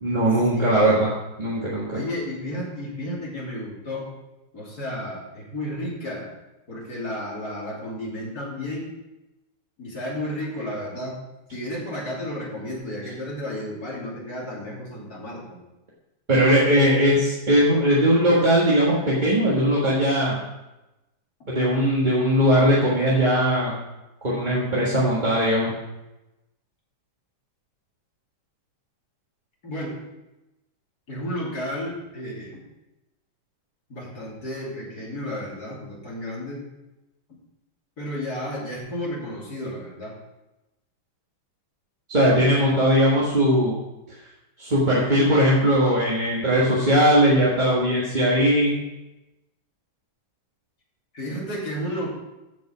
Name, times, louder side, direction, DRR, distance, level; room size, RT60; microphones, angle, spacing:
voice 1, 0.0-1.1 1.4-2.0 16.3-20.4 21.5-23.7 24.2-25.7 42.1-43.8 44.6-48.8, equal, 25° right, -6 dB, 1.6 m, -19 dB
voice 2, 0.5-0.9 1.9-4.1 4.5-6.3 6.7-8.9 9.8-11.1 11.5-15.6 29.6-29.9 31.1-32.6 33.9-36.6 38.0-40.1 51.1-52.1, left 1 dB, 50° left, -5 dB, 3.3 m, -32 dB
14.5 x 5.4 x 5.0 m, 0.99 s
omnidirectional pair, 2.2 m